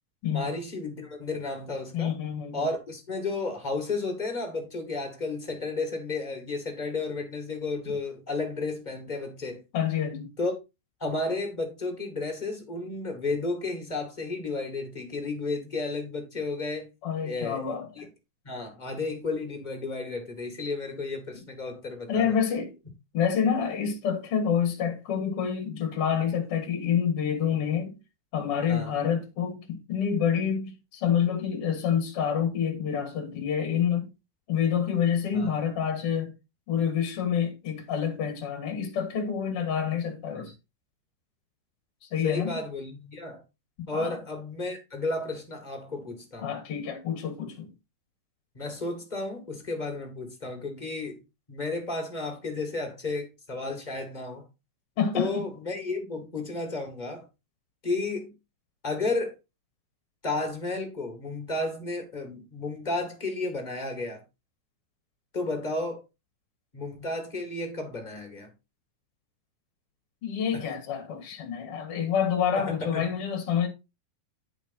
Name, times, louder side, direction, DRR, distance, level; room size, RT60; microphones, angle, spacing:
voice 1, 0.3-2.2 2.5-9.6 10.4-10.5 11.0-16.9 17.2-18.0 18.4-22.4 28.7-29.0 35.3-35.5 40.3-40.4 42.2-43.4 43.9-46.5 48.5-51.2 51.5-54.5 55.1-57.3 57.8-58.3 58.8-59.3 60.2-64.2 65.3-66.0 66.7-68.5 70.5-70.7 72.5-73.1, left 3 dB, 15° left, 1.8 m, -32 dB
voice 2, 1.9-2.7 9.7-10.3 17.0-18.1 22.1-22.7 23.1-28.0 28.3-34.1 34.5-36.3 36.7-40.5 42.0-42.5 43.8-44.2 46.4-47.7 55.0-55.5 70.2-73.7, left 8 dB, 50° left, 2.1 m, -28 dB
10.5 x 5.1 x 4.2 m
omnidirectional pair, 3.9 m